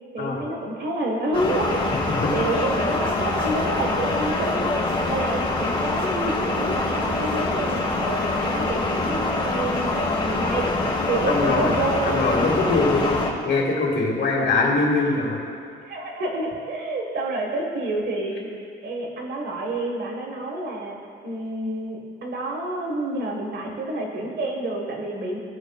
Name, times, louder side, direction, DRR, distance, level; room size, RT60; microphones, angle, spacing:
voice 1, 0.1-1.8 2.3-4.8 5.1-10.7 11.1-12.5 14.2-14.5 15.8-18.5 18.8-21.0 21.2-25.4, right 2 dB, 60° right, 0 dB, 1.5 m, -28 dB
sound 1, 1.3-13.3, left 2 dB, 25° left, 1.3 m, -25 dB
voice 2, 11.3-11.7 12.0-13.2 13.5-15.4, left 3 dB, 60° left, -2 dB, 1.8 m, -22 dB
15.0 x 5.1 x 2.3 m, 2.3 s
cardioid pair, 90°, 20 cm